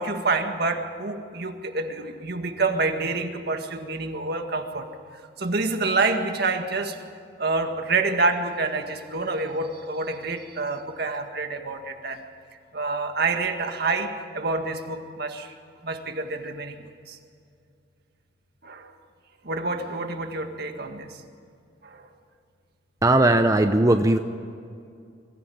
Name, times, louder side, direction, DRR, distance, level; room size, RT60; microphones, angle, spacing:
voice 1, 0.0-4.9 5.4-7.0 7.4-12.2 12.7-15.5 15.8-16.7 17.1-17.2 18.6-18.9 19.4-21.1 21.8-22.0, right 3 dB, 60° right, 5 dB, 1.9 m, -27 dB
voice 2, 23.0-24.2, right 1 dB, 20° right, 6 dB, 0.7 m, -18 dB
23.5 x 15.0 x 8.8 m, 2.4 s
head